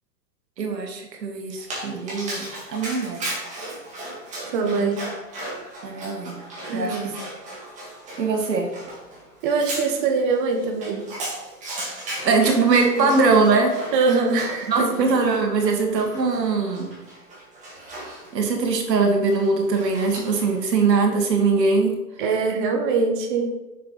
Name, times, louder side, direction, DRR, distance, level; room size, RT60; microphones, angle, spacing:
voice 1, 0.6-3.3 5.8-6.4 6.7-7.1 8.2-8.7 12.2-13.9 14.7-16.9 18.3-22.0, right 4 dB, 85° right, 3 dB, 2.0 m, -21 dB
Dog, 1.6-20.6, right 1 dB, 15° right, 2.0 m, -37 dB
voice 2, 4.5-5.0 6.7-7.2 9.4-11.0 13.0-13.1 13.9-15.1 22.2-23.5, right 4 dB, 30° right, 3 dB, 0.9 m, -23 dB
6.9 x 6.7 x 4.0 m, 1.1 s
hypercardioid pair, 155°, 49 cm